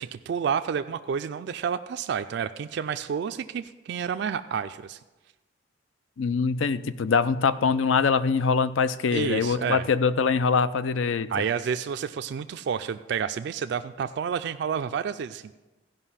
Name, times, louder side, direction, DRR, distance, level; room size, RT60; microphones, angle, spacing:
voice 1, 0.0-5.0 9.1-9.9 11.3-15.5, right 7 dB, 60° right, 9 dB, 0.3 m, -30 dB
voice 2, 6.2-11.3, left 5 dB, 90° left, 14 dB, 0.5 m, -23 dB
14.5 x 5.4 x 5.6 m, 1.1 s
head